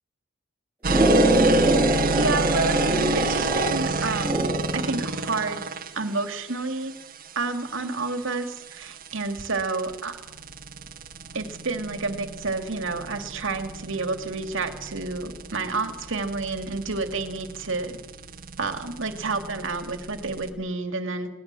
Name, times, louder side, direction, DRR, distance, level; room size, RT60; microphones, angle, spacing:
sound 1, 0.8-20.5, right 3 dB, 45° right, 1.6 m, -31 dB
sound 2, 0.9-4.9, right 1 dB, 10° right, 6.6 m, -23 dB
voice 1, 2.1-5.6 5.9-6.9 7.4-10.2 11.3-18.0 18.6-21.3, right 3 dB, 65° right, 7 dB, 2.5 m, -30 dB
22.5 x 19.0 x 7.7 m, 1.0 s
head